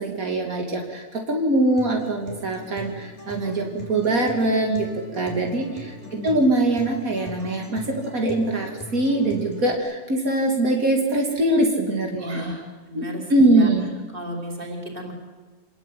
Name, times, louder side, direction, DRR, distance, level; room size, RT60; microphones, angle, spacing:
voice 1, 0.0-4.9 5.1-5.9 6.2-12.5 12.9-13.0 13.3-13.9, right 1 dB, 90° right, 1 dB, 3.3 m, -22 dB
Acoustic guitar, 1.7-9.7, equal, 15° left, 7.0 m, -40 dB
voice 2, 6.0-6.4 12.2-13.7 14.1-15.1, equal, 40° right, 1 dB, 4.9 m, -34 dB
27.5 x 20.5 x 9.4 m, 1.3 s
omnidirectional pair, 1.4 m